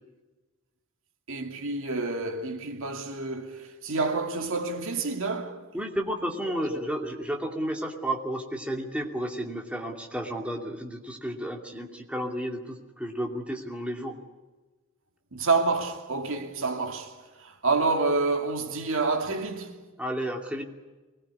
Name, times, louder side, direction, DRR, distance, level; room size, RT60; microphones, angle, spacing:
voice 1, 1.3-5.7 6.5-6.8 15.3-19.8, right 3 dB, 60° right, 2.5 m, -28 dB
voice 2, 5.7-14.1 20.0-20.6, right 1 dB, 5° right, 2.6 m, -32 dB
24.5 x 20.0 x 9.6 m
head